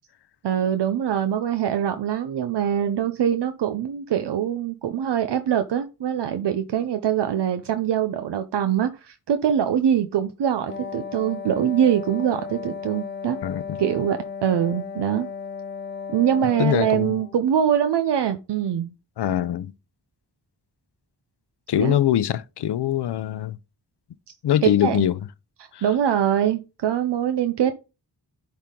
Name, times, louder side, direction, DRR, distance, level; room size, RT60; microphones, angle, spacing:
voice 1, 0.4-13.4 13.8-15.3 16.1-18.9 21.8-22.0 24.3-24.4 24.6-25.0 25.8-27.7, right 9 dB, 80° right, 0.6 m, -23 dB
Wind instrument woodwind instrument, 10.7-17.4, left 6 dB, 25° left, 0.9 m, -35 dB
voice 2, 13.4-13.8 16.6-17.1 19.2-19.7 21.7-23.6 24.4-25.1 25.7-25.8, left 11 dB, 75° left, 0.6 m, -23 dB
10.5 x 3.5 x 3.7 m
cardioid pair, 70°, 41 cm